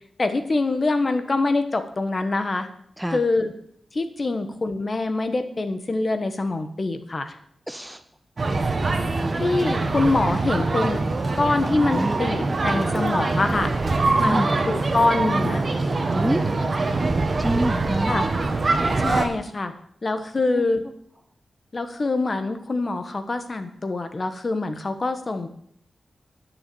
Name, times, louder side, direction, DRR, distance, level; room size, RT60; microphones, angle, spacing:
voice 1, 0.2-2.7 3.1-3.5 3.9-7.4 9.4-11.0 11.4-13.7 14.2-15.6 18.1-18.3 19.0-19.7 20.0-20.8 21.7-25.5, left 3 dB, 35° left, 8 dB, 1.3 m, -24 dB
voice 2, 7.7-8.0 8.8-9.4 11.9-12.2 14.2-14.5 16.1-16.4 17.4-18.1 20.5-20.7, right 1 dB, 5° right, 10 dB, 0.5 m, -27 dB
sound 1, 8.4-19.3, right 3 dB, 40° right, 1.5 m, -23 dB
10.5 x 6.5 x 8.4 m, 0.68 s
wide cardioid pair, 105°, 0 cm